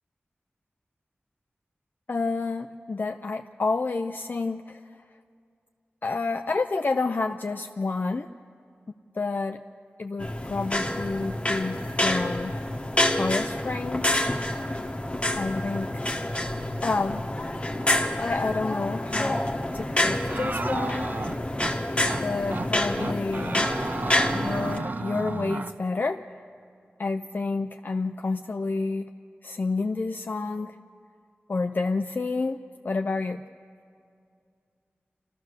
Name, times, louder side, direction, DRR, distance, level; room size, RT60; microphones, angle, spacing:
voice 1, 2.1-4.8 6.0-8.3 9.1-9.6 10.0-12.5 13.1-14.3 15.4-16.4 16.8-17.3 17.8-19.4 19.7-21.1 22.2-23.7 24.3-26.2 27.0-29.1 29.4-30.8 31.5-33.4, left 3 dB, 50° left, 6 dB, 0.5 m, -29 dB
sound 1, 10.2-24.8, left 1 dB, 30° left, 1.2 m, -28 dB
sound 2, 20.3-21.7 22.1-22.2 22.5-22.7 23.0-25.7, right 3 dB, 50° right, 0.5 m, -33 dB
28.5 x 14.0 x 6.6 m, 2.4 s
wide cardioid pair, 85°, 4 cm